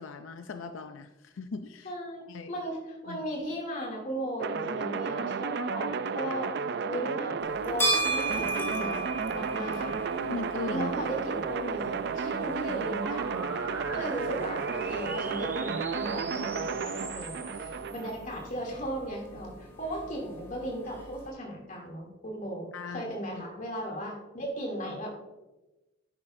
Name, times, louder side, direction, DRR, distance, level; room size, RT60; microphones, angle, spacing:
voice 1, 0.0-1.9 2.3-2.5 3.1-3.2 10.1-10.9 22.7-23.4, left 4 dB, 85° left, 8 dB, 0.5 m, -39 dB
voice 2, 1.8-2.2 2.5-6.5 6.9-9.0 9.3-9.9 10.7-13.5 13.9-25.1, equal, 40° left, -1 dB, 2.8 m, -36 dB
sound 1, 4.4-18.1, right 5 dB, 55° right, 0.4 m, -32 dB
sound 2, 7.4-21.3, right 2 dB, 15° left, 2.6 m, -37 dB
sound 3, 13.0-18.5, right 2 dB, 10° right, 0.8 m, -43 dB
10.5 x 9.6 x 2.6 m, 1.1 s
head